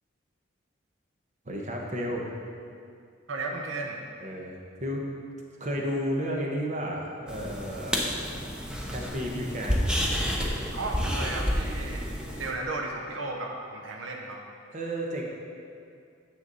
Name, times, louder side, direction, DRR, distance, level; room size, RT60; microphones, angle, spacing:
voice 1, 1.4-2.3 4.2-5.1 5.6-8.2 8.9-9.9 14.7-15.2, equal, 40° right, -1 dB, 1.1 m, -32 dB
voice 2, 3.3-4.0 10.7-12.1 12.4-14.4, right 2 dB, 90° right, 1 dB, 0.9 m, -34 dB
sound 1, 7.3-12.5, equal, 5° right, 0.8 m, -30 dB
9.4 x 7.1 x 4.0 m, 2.4 s
head